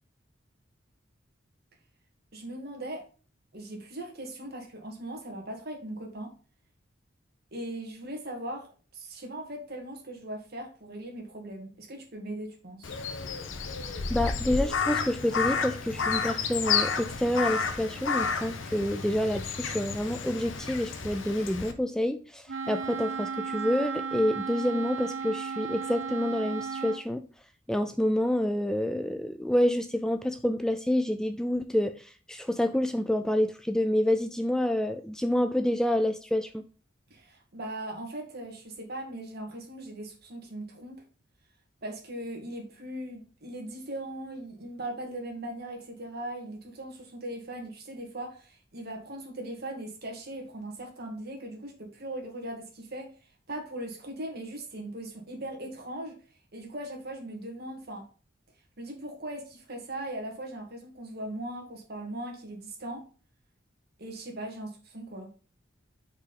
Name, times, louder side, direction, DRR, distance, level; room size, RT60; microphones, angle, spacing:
voice 1, 2.3-3.0 3.5-6.3 7.5-8.7 8.9-12.9 37.1-41.0 41.8-53.1 53.5-56.2 56.5-58.0 58.8-63.0 64.0-65.3, right 1 dB, 55° right, 2 dB, 1.9 m, -39 dB
Crow, 12.8-21.7, left 5 dB, 85° left, 0.9 m, -31 dB
voice 2, 14.1-27.2 27.7-36.6, left 1 dB, 5° left, 8 dB, 0.3 m, -28 dB
Wind instrument woodwind instrument, 22.5-27.1, right 5 dB, 80° right, 0.7 m, -34 dB
4.9 x 4.5 x 5.2 m, 0.38 s
head